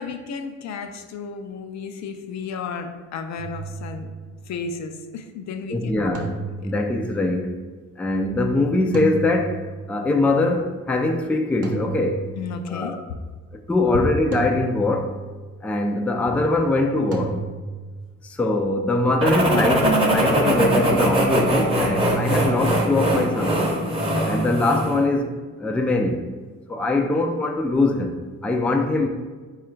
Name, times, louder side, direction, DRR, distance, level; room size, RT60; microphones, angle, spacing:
voice 1, 0.0-4.1 4.5-6.7 12.4-13.0, left 5 dB, 65° left, 0.5 m, -33 dB
sound 1, 3.4-4.4 6.1-7.3 8.9-10.1 11.6-12.8 14.3-15.5 17.1-18.0, right 4 dB, 50° right, 0.7 m, -33 dB
voice 2, 5.7-6.4 6.6-7.6 8.0-9.6 9.9-12.2 12.7-13.0 13.7-15.1 15.6-17.4 18.2-23.6 24.3-25.3 25.6-26.2 26.7-28.2 28.4-29.1, left 2 dB, 5° left, 0.3 m, -22 dB
sound 2, 19.2-25.0, right 1 dB, 20° right, 0.8 m, -21 dB
4.1 x 2.4 x 4.4 m
cardioid pair, 90°, 30 cm